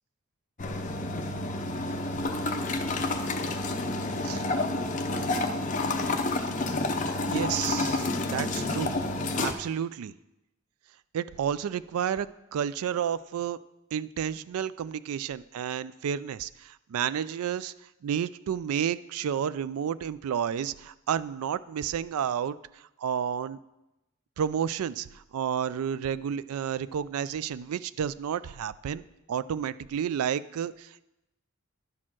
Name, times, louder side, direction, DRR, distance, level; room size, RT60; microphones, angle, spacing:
sound 1, 0.6-9.5, left 2 dB, 35° left, 0.6 m, -29 dB
voice 1, 7.3-8.9 9.4-10.1 11.1-13.6 13.9-17.7 18.0-23.6 24.4-29.0 29.3-31.0, right 8 dB, 85° right, 17 dB, 0.3 m, -31 dB
11.0 x 4.3 x 6.1 m, 0.93 s
head